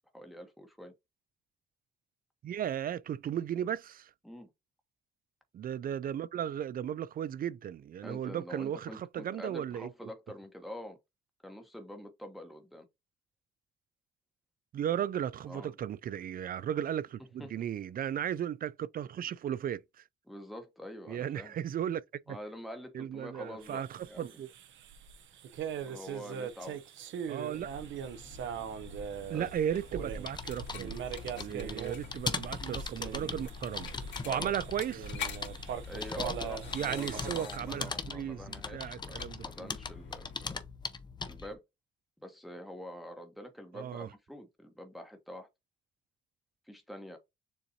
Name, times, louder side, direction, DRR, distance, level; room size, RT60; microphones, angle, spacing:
voice 1, 0.1-0.9 4.2-4.5 8.0-11.0 11.4-12.9 15.5-15.7 17.4-17.7 20.3-21.5 22.3-24.4 25.9-26.8 29.3-29.5 31.5-31.7 34.2-34.5 35.8-40.6 41.3-41.6 42.2-45.5 46.7-47.2, left 1 dB, ahead, 1.0 m, -46 dB
voice 2, 2.4-4.1 5.5-10.1 14.7-20.0 21.1-22.0 22.3-22.4 22.9-24.5 27.3-27.7 29.3-31.0 31.4-33.9 34.2-35.1 36.7-39.7 43.7-44.1, right 10 dB, 45° right, 0.4 m, -35 dB
sound 1, 23.6-37.4, right 7 dB, 70° right, 0.7 m, -41 dB
sound 2, 27.5-40.4, left 7 dB, 65° left, 2.3 m, -48 dB
sound 3, 29.9-41.5, left 4 dB, 20° left, 0.6 m, -40 dB
6.9 x 2.6 x 2.7 m
cardioid pair, 90°, 20 cm